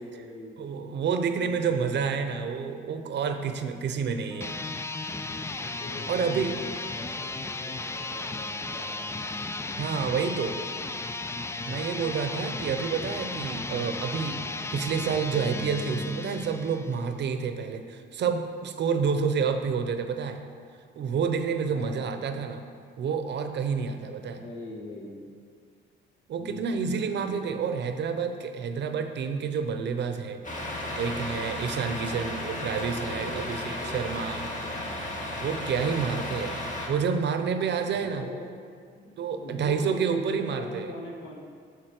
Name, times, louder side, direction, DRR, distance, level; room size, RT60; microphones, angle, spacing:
voice 1, 0.0-0.6 1.4-2.0 4.3-4.4 5.6-9.1 10.3-10.7 12.4-12.6 19.1-19.7 21.6-22.2 24.1-25.3 26.4-27.7 30.4-32.3 33.1-34.2 34.6-35.1 36.0-36.4 37.8-38.5 38.9-41.4, left 1 dB, 70° left, -1 dB, 1.8 m, -43 dB
voice 2, 0.6-4.5 6.1-6.5 9.8-10.5 11.6-14.4 14.7-20.4 21.0-22.6 23.0-24.4 26.3-30.4 30.7-34.4 35.4-36.6 36.9-38.3 39.2-40.9, right 6 dB, 60° right, 7 dB, 0.8 m, -29 dB
sound 1, 4.3-17.1, left 3 dB, 15° left, 0.4 m, -35 dB
Truck, 30.4-36.9, left 1 dB, 40° left, 1.8 m, -34 dB
7.3 x 6.6 x 5.9 m, 2.1 s
cardioid pair, 90°, 20 cm